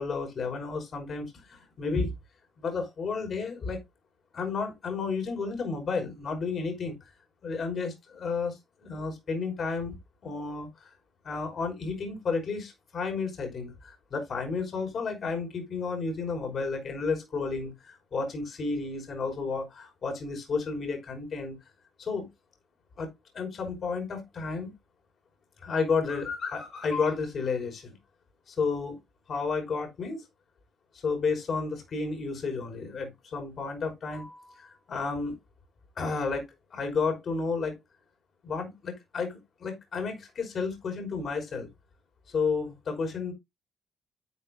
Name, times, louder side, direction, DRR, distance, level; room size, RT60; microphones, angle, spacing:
voice 1, 0.0-2.1 2.6-3.8 4.3-7.0 7.4-10.0 10.2-10.9 11.2-21.6 22.0-22.3 23.0-24.7 25.6-28.0 28.5-29.0 29.3-30.2 30.9-35.4 36.0-37.8 38.4-41.7 42.3-43.3, left 4 dB, 55° left, 5.5 m, -32 dB
12.5 x 9.5 x 2.6 m
cardioid pair, 90°, 0 cm